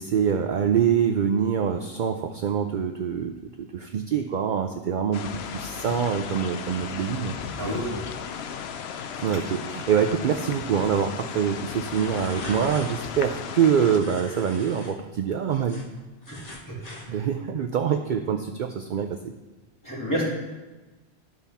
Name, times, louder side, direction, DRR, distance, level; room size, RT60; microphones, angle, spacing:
voice 1, 0.0-7.9 9.2-15.9 17.1-19.2, right 7 dB, 60° right, 6 dB, 0.6 m, -25 dB
sound 1, 5.1-14.0, left 7 dB, 75° left, 0.8 m, -35 dB
voice 2, 7.6-8.0 16.7-17.2 19.8-20.2, equal, 15° left, -7 dB, 2.6 m, -30 dB
sound 2, 11.8-13.1 13.9-14.9 15.3-17.1, left 2 dB, 40° left, 1.3 m, -41 dB
12.0 x 5.5 x 3.5 m, 1.2 s
omnidirectional pair, 1.1 m